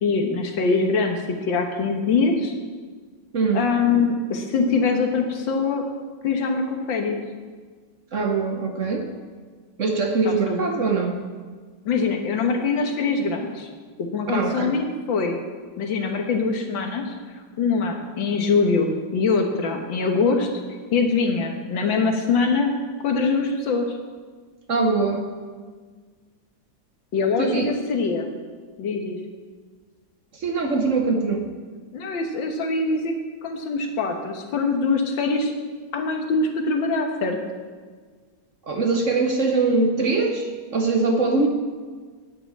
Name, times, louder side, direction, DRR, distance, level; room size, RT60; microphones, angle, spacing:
voice 1, 0.0-2.5 3.5-5.8 6.2-7.2 10.3-10.7 11.9-13.7 14.0-15.4 15.8-17.2 17.6-20.5 20.9-22.8 23.0-23.9 27.1-28.3 28.8-29.2 31.9-33.2 33.4-35.5 35.9-37.4, left 4 dB, 85° left, 3 dB, 2.0 m, -23 dB
voice 2, 3.3-3.7 8.1-9.1 9.8-11.2 14.3-14.8 24.7-25.3 27.4-27.7 30.3-31.5 38.6-41.5, right 3 dB, 50° right, 4 dB, 1.1 m, -22 dB
9.7 x 7.0 x 8.6 m, 1.5 s
omnidirectional pair, 2.0 m